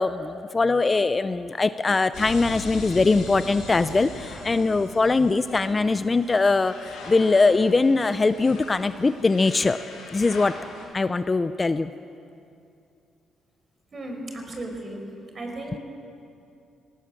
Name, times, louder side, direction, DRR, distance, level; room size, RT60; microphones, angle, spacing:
voice 1, 0.0-9.8 10.1-10.6 10.9-11.9, left 3 dB, 25° left, 12 dB, 0.5 m, -22 dB
sound 1, 2.1-10.8, left 3 dB, 90° left, 6.2 m, -41 dB
voice 2, 13.9-15.0 15.3-15.8, right 1 dB, 40° right, 3 dB, 4.7 m, -35 dB
19.5 x 18.5 x 7.7 m, 2.6 s
cardioid pair, 90°, 0 cm